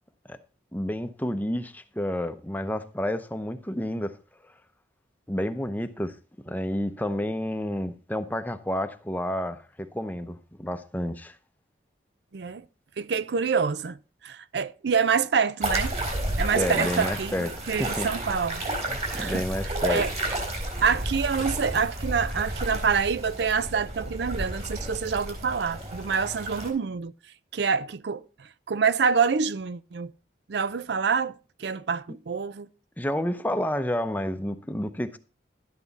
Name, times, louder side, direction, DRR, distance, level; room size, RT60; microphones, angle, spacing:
voice 1, 0.7-4.2 5.3-6.2 6.4-11.4 16.5-18.1 18.9-20.0 33.0-35.2, left 1 dB, 10° left, 0.7 m, -30 dB
voice 2, 12.3-12.6 13.0-14.0 14.2-15.9 16.4-17.3 17.7-18.6 19.0-19.4 19.8-20.1 20.8-27.1 27.5-30.1 30.5-31.3 31.6-32.7, right 6 dB, 65° right, 0.5 m, -26 dB
sound 1, 15.6-26.7, right 1 dB, 35° right, 4.1 m, -31 dB
12.0 x 9.3 x 4.1 m
head